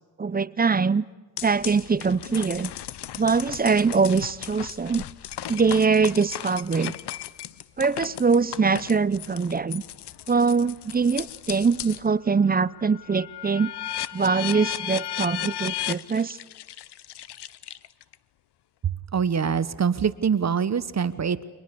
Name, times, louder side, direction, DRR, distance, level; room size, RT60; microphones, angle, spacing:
voice 1, 0.2-1.0 1.4-2.7 3.1-5.0 5.5-6.9 7.8-9.8 10.3-13.7 14.1-16.4, right 5 dB, 20° right, 17 dB, 0.7 m, -23 dB
sound 1, 1.4-12.1 12.5-18.1, left 12 dB, 80° left, 1.0 m, -36 dB
voice 2, 19.1-21.4, right 6 dB, 40° right, 14 dB, 1.2 m, -24 dB
30.0 x 25.0 x 7.0 m, 1.3 s
cardioid pair, 105°, 40 cm